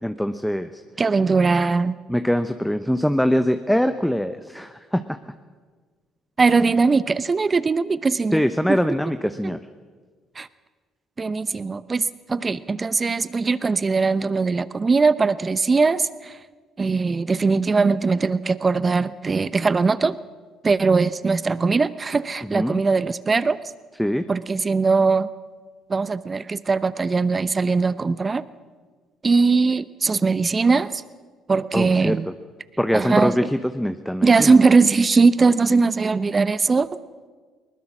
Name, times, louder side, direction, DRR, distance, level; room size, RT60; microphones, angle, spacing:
voice 1, 0.0-0.8 2.1-5.2 8.3-9.6 22.5-22.8 24.0-24.2 31.7-32.1 32.8-34.5, equal, 5° left, 9 dB, 0.9 m, -23 dB
voice 2, 1.0-2.0 6.4-8.8 9.4-9.5 10.4-10.5 11.2-16.4 16.8-20.2 20.6-23.6 24.3-25.3 25.9-28.4 29.2-31.0 31.5-32.3 32.9-33.5 34.2-36.9, right 4 dB, 30° right, 16 dB, 0.8 m, -20 dB
21.5 x 19.5 x 6.2 m, 1.5 s
hypercardioid pair, 60°, 0 cm